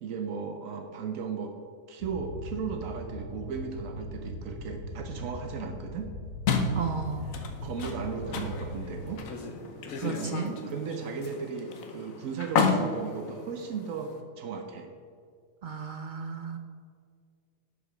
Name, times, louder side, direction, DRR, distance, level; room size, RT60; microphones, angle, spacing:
voice 1, 0.0-1.6 1.9-6.1 7.6-9.2 10.0-10.4 10.7-14.9, right 5 dB, 80° right, 5 dB, 1.1 m, -36 dB
sound 1, 2.0-9.1, left 1 dB, 70° left, 1.3 m, -40 dB
sound 2, 6.5-14.2, left 4 dB, 90° left, 1.3 m, -32 dB
voice 2, 6.7-7.3 10.0-10.5 15.6-16.6, right 5 dB, 60° right, 6 dB, 0.5 m, -34 dB
11.5 x 5.1 x 5.0 m, 2.2 s
omnidirectional pair, 1.4 m